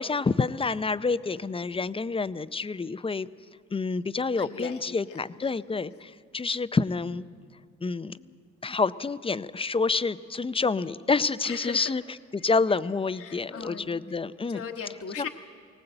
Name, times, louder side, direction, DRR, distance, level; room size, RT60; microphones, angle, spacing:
voice 1, 0.0-3.3 3.7-7.2 7.8-8.2 8.6-12.0 12.3-14.6 15.2-15.3, left 4 dB, 20° left, 15 dB, 0.5 m, -28 dB
voice 2, 4.4-5.5 8.2-8.4 11.4-11.9 12.4-12.5 13.2-14.0 14.5-15.3, left 6 dB, 50° left, 4 dB, 1.2 m, -39 dB
21.0 x 18.5 x 7.9 m, 2.4 s
cardioid pair, 90°, 30 cm